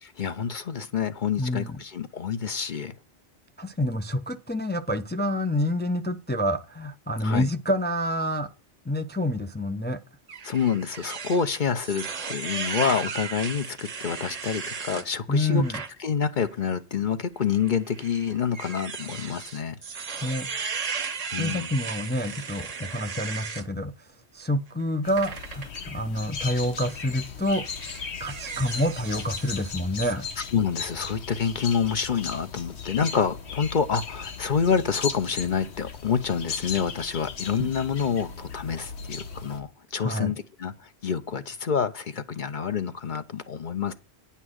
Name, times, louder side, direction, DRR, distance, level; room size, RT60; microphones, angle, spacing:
voice 1, 0.0-2.9 7.2-7.5 10.4-15.6 16.0-19.8 21.3-21.7 30.1-43.9, left 6 dB, 50° left, 0.9 m, -27 dB
voice 2, 1.4-1.7 3.6-8.5 8.9-10.0 15.3-15.8 20.2-20.5 21.4-23.9 24.3-27.6 28.2-30.2 37.6-37.7 40.0-40.3, left 1 dB, 15° left, 0.4 m, -27 dB
sound 1, 10.3-15.1 15.6-15.9 16.4-16.5 17.5-23.7 25.2-25.8 26.8-27.0 27.5-29.7 30.0-30.1, right 5 dB, 40° right, 0.8 m, -36 dB
sound 2, 25.0-39.6, left 5 dB, 80° left, 1.3 m, -37 dB
9.7 x 5.7 x 6.3 m
omnidirectional pair, 1.1 m